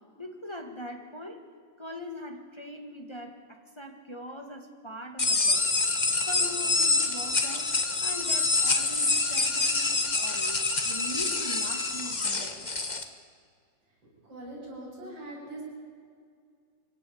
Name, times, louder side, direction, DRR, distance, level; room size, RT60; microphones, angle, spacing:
voice 1, 0.2-1.4 1.8-5.8 6.3-7.7 8.0-12.9, left 1 dB, 15° left, 4 dB, 1.0 m, -41 dB
sound 1, 5.2-13.0, left 3 dB, 80° left, 0.4 m, -26 dB
voice 2, 14.2-15.6, right 1 dB, 50° right, -6 dB, 8.5 m, -41 dB
23.0 x 17.5 x 8.7 m, 2.1 s
omnidirectional pair, 3.4 m